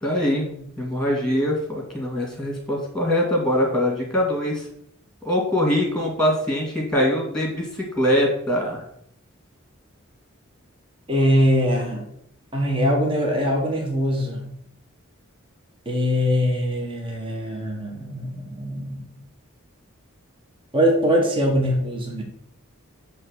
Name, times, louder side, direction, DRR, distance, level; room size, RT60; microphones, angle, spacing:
voice 1, 0.0-4.6 5.2-8.8, left 1 dB, 5° left, -1 dB, 2.3 m, -23 dB
voice 2, 11.1-12.1 12.5-14.5 15.8-19.1 20.7-22.2, equal, 25° right, 0 dB, 1.3 m, -22 dB
8.6 x 3.4 x 6.4 m, 0.70 s
head